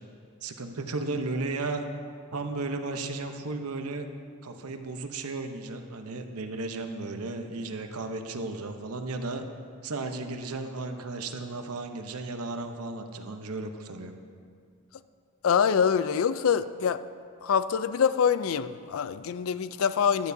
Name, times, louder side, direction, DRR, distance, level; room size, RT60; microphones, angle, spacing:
voice 1, 0.4-1.8 2.3-4.1 4.4-9.4 9.8-14.1, right 3 dB, 80° right, 6 dB, 0.8 m, -34 dB
voice 2, 15.4-17.0 17.4-20.3, left 7 dB, 65° left, 13 dB, 0.4 m, -25 dB
15.0 x 11.5 x 2.7 m, 2.2 s
head